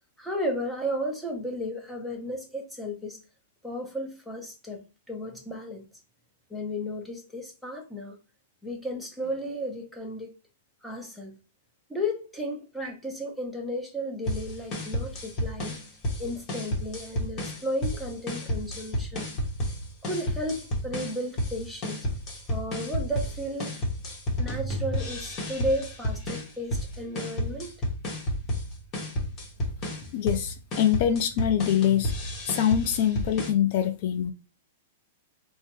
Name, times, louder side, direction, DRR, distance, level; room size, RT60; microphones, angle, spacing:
voice 1, 0.2-3.2 3.6-4.8 5.1-5.8 6.5-8.2 8.6-10.3 10.8-11.4 11.9-15.8 16.2-19.3 20.0-22.1 22.5-23.8 24.4-27.7, equal, ahead, 0.8 m, -34 dB
sound 1, 14.3-33.5, equal, 35° left, 1.0 m, -32 dB
voice 2, 30.1-32.1 32.5-34.3, left 10 dB, 55° left, 0.3 m, -24 dB
3.4 x 2.1 x 3.0 m
hypercardioid pair, 125°, 0 cm